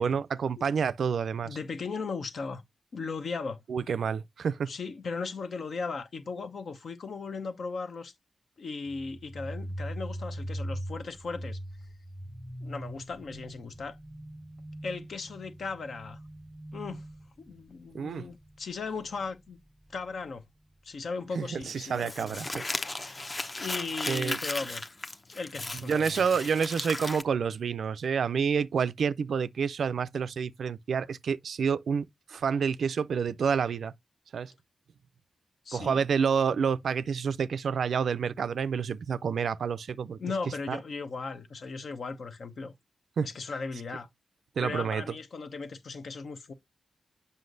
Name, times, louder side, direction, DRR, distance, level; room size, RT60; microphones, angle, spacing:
voice 1, 0.0-1.6 3.7-4.7 17.9-18.3 21.4-22.6 24.1-24.4 25.9-33.9 34.3-34.5 35.7-40.2 40.7-40.8 43.2-43.3 44.6-45.0, right 6 dB, 75° right, 0.3 m, -28 dB
voice 2, 1.4-2.6 2.9-3.6 4.7-8.1 8.6-11.6 12.6-14.0 14.8-16.2 16.7-17.0 17.4-19.6 19.9-20.4 20.8-22.4 22.9-24.9 25.3-26.3 35.6-36.0 40.2-42.7 43.2-44.1 44.6-46.5, left 4 dB, 70° left, 0.8 m, -37 dB
sound 1, 8.9-20.4, equal, 5° right, 0.6 m, -41 dB
Crumpling crinkling, 21.7-27.2, left 2 dB, 35° left, 0.7 m, -36 dB
7.7 x 5.5 x 2.5 m
cardioid pair, 55°, 0 cm